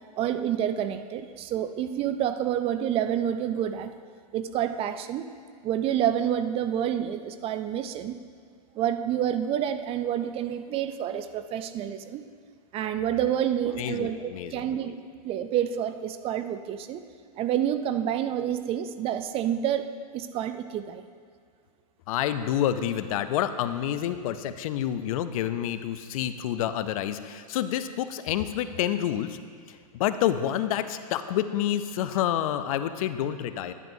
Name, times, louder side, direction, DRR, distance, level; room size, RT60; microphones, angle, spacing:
voice 1, 0.2-3.9 4.3-5.3 5.6-8.2 8.8-12.2 12.7-15.0 15.2-17.0 17.4-21.0, right 10 dB, 30° right, 10 dB, 0.4 m, -28 dB
voice 2, 13.8-15.0 22.1-29.4 29.7-33.7, left 11 dB, 60° left, 11 dB, 0.5 m, -28 dB
11.0 x 10.5 x 2.7 m, 2.1 s
hypercardioid pair, 115°, 20 cm